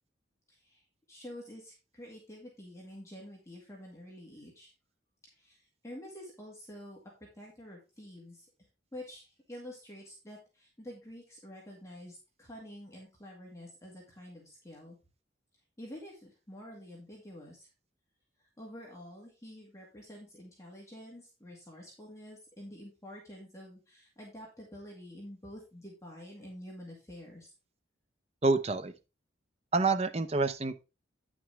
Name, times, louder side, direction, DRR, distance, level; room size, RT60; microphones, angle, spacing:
voice 1, 0.5-4.7 5.3-7.0 7.3-8.5 8.9-15.0 15.8-17.7 18.4-27.5, left 1 dB, 15° left, 2.0 m, -48 dB
voice 2, 28.4-28.9 29.7-30.9, right 3 dB, 30° right, 0.7 m, -28 dB
9.4 x 6.1 x 3.5 m
head